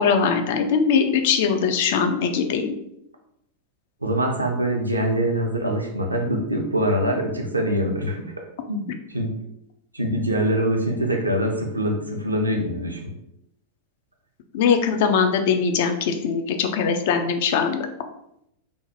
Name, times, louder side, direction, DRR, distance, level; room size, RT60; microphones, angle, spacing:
voice 1, 0.0-2.8 14.5-17.9, left 6 dB, 50° left, 6 dB, 0.3 m, -21 dB
voice 2, 4.0-8.3 8.7-9.4 9.9-13.2, equal, 85° right, 2 dB, 0.4 m, -24 dB
2.6 x 2.1 x 2.7 m, 0.78 s
figure-of-eight pair, 90°, 0 cm